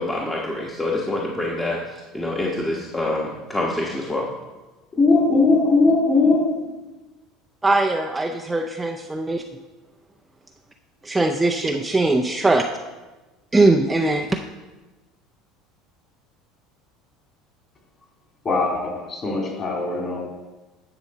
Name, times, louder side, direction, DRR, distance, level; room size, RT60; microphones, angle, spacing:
voice 1, 0.0-1.8 2.1-4.3, left 2 dB, 15° left, -3 dB, 1.1 m, -26 dB
voice 2, 5.0-6.6 18.4-20.2, left 3 dB, 30° left, -1 dB, 2.7 m, -19 dB
voice 3, 7.6-9.6 11.0-12.6 13.5-14.4, right 2 dB, 10° right, 4 dB, 0.5 m, -20 dB
10.5 x 3.9 x 6.5 m, 1.2 s
supercardioid pair, 120°, 0 cm